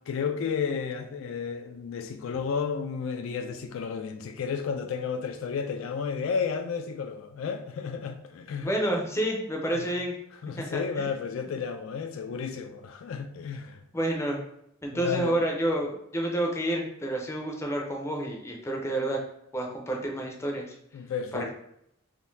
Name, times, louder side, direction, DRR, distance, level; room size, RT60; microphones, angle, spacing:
voice 1, 0.1-8.7 10.4-13.8 14.9-15.4 20.9-21.5, left 6 dB, 70° left, 0.3 m, -32 dB
voice 2, 8.6-10.1 10.6-11.1 13.9-14.4 14.8-19.2 19.5-20.7 21.3-21.5, right 1 dB, 15° left, 0.5 m, -29 dB
3.7 x 2.6 x 2.6 m
head